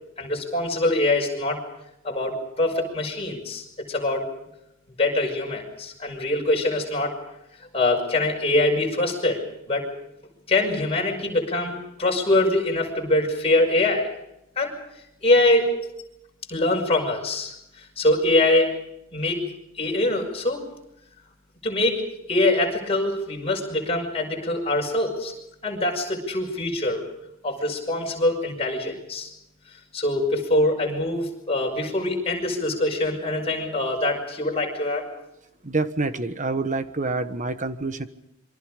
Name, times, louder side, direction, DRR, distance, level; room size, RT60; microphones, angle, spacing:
voice 1, 0.2-1.6 2.0-4.2 5.0-7.2 7.7-9.4 9.7-9.9 10.5-14.1 14.6-14.7 15.2-15.7 16.5-18.7 19.1-19.4 19.8-20.6 21.6-22.0 22.3-25.3 25.6-27.0 27.4-29.3 29.9-35.1, left 2 dB, 30° left, 0 dB, 6.4 m, -23 dB
voice 2, 35.6-38.1, right 3 dB, 40° right, 10 dB, 1.3 m, -27 dB
27.5 x 24.0 x 5.2 m, 0.85 s
head